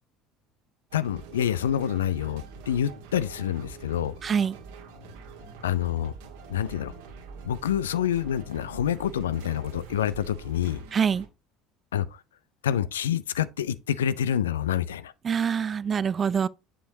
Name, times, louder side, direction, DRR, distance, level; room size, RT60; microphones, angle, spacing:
voice 1, 0.9-4.1 5.6-6.1 6.5-6.9 7.4-10.8 11.9-12.1 12.6-15.1, left 10 dB, 75° left, 0.4 m, -27 dB
sound 1, 0.9-11.3, right 4 dB, 70° right, 1.6 m, -45 dB
voice 2, 4.2-4.6 10.9-11.2 15.2-16.5, right 7 dB, 35° right, 0.4 m, -25 dB
7.4 x 6.8 x 2.7 m
figure-of-eight pair, 65°, 0 cm